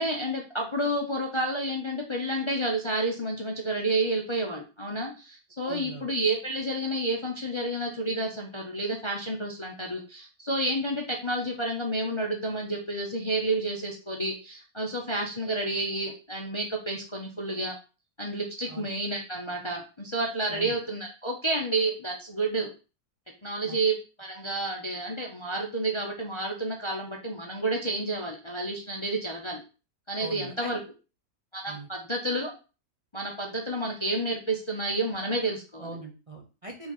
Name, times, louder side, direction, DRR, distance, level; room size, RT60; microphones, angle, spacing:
voice 1, 0.0-17.7 18.2-22.7 23.4-29.6 30.1-30.8 31.5-32.5 33.1-35.9, right 2 dB, 25° left, 1 dB, 0.9 m, -30 dB
voice 2, 5.6-6.1 18.7-18.9 20.5-20.7 23.6-23.8 30.2-30.7 31.7-31.9 35.8-36.9, right 2 dB, 25° right, 0 dB, 0.9 m, -41 dB
5.0 x 3.7 x 5.5 m, 0.32 s
omnidirectional pair, 1.6 m